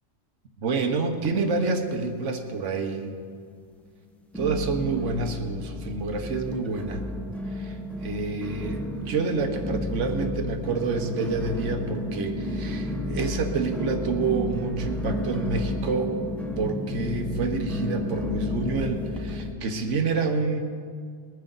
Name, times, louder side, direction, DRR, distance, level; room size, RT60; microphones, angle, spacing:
voice 1, 0.6-3.1 4.3-7.1 7.5-16.1 16.6-20.6, right 4 dB, 65° right, 6 dB, 1.4 m, -28 dB
sound 1, 1.2-2.1 2.4-3.0 3.5-3.6 4.3-19.5, left 1 dB, ahead, 0.7 m, -32 dB
21.0 x 9.9 x 4.0 m, 2.2 s
omnidirectional pair, 1.4 m